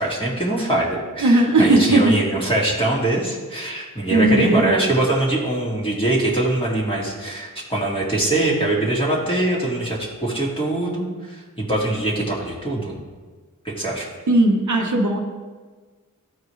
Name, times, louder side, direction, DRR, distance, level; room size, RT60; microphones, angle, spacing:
voice 1, 0.0-13.0 13.6-14.1, right 1 dB, 15° left, -6 dB, 2.1 m, -23 dB
voice 2, 1.2-2.1 4.1-4.9 14.3-15.2, right 2 dB, 65° right, 2 dB, 1.0 m, -17 dB
14.0 x 4.6 x 3.2 m, 1.4 s
wide cardioid pair, 60°, 32 cm